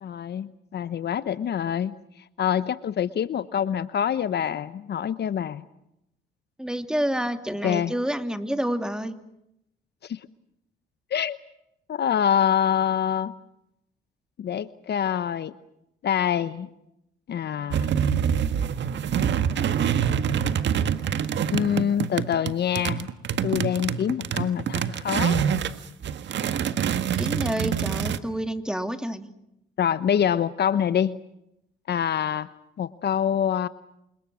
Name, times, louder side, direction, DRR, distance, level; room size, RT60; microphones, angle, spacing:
voice 1, 0.0-1.9 2.4-5.6 7.6-7.9 10.0-10.2 11.1-11.4 11.9-13.3 14.4-15.5 16.0-16.7 17.3-17.9 21.5-23.1 23.4-25.4 29.8-31.2 31.9-32.5 32.8-33.7, left 9 dB, 55° left, 15 dB, 1.0 m, -25 dB
voice 2, 6.6-9.1 27.2-29.3, equal, 5° right, 8 dB, 2.6 m, -28 dB
sound 1, 17.7-25.8 26.0-28.2, right 8 dB, 65° right, 1.7 m, -25 dB
29.0 x 26.5 x 6.3 m, 0.82 s
cardioid pair, 90°, 20 cm